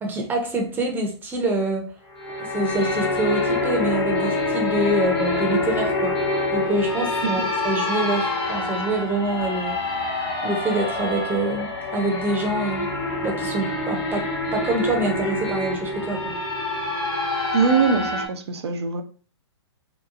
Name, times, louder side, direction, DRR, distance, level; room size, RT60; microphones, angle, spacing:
voice 1, 0.0-1.9 2.5-6.2 6.5-9.8 10.4-12.9 13.2-16.4, right 2 dB, 15° right, 0.6 m, -26 dB
sound 1, 2.1-18.3, left 2 dB, 65° left, 1.2 m, -26 dB
voice 2, 17.5-19.0, right 5 dB, 70° right, 0.5 m, -22 dB
2.8 x 2.3 x 2.4 m
figure-of-eight pair, 115°, 14 cm